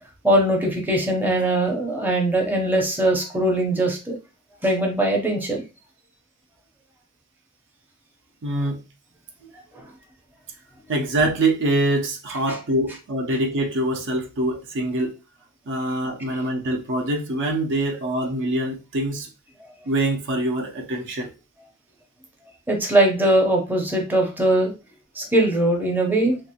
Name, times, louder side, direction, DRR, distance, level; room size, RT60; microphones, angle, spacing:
voice 1, 0.2-4.2 4.6-5.6 9.7-9.8 12.5-12.6 22.7-24.7 25.1-26.4, right 1 dB, 10° right, 0.6 m, -21 dB
voice 2, 8.4-8.8 10.9-15.2 15.7-19.3 19.9-21.3, right 1 dB, 55° right, 0.6 m, -24 dB
2.8 x 2.6 x 2.8 m
head